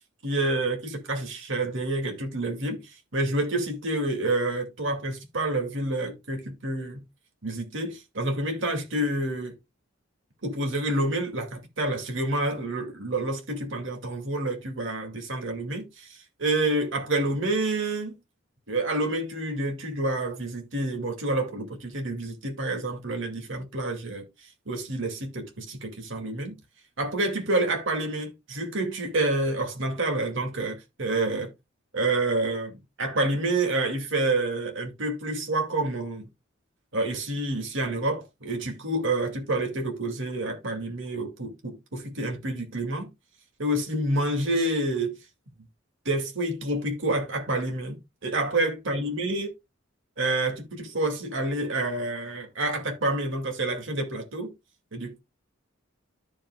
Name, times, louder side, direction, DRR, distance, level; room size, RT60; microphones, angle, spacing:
voice 1, 0.2-7.0 7.4-9.5 10.4-18.2 18.7-26.5 27.0-31.5 31.9-36.3 36.9-43.1 43.6-45.2 46.1-49.5 50.2-54.5 54.9-55.2, right 2 dB, 65° right, 2.2 m, -28 dB
13.5 x 5.2 x 2.3 m
head